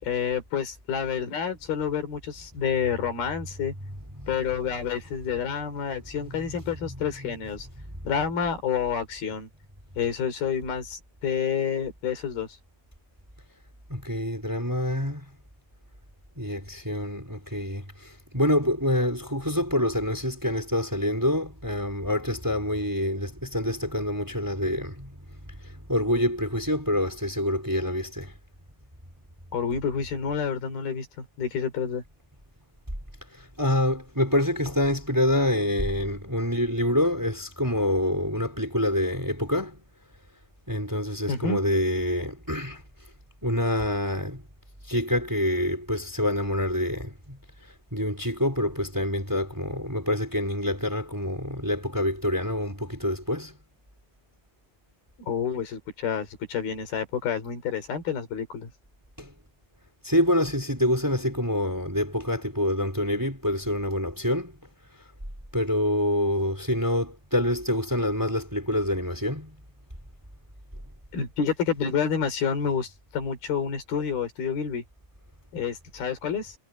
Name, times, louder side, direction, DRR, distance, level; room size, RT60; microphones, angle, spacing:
voice 1, 0.0-3.7 4.3-7.7 8.0-9.5 10.0-12.5 29.5-32.0 41.3-41.6 55.3-58.7 71.1-74.8 75.5-76.6, left 7 dB, 80° left, 5.5 m, -29 dB
voice 2, 13.9-15.3 16.4-25.2 25.5-28.3 33.4-39.8 40.7-42.8 43.4-44.4 44.9-47.4 47.9-53.5 59.2-59.3 60.0-64.5 65.5-69.6, left 1 dB, 5° right, 4.0 m, -26 dB
omnidirectional pair, 4.3 m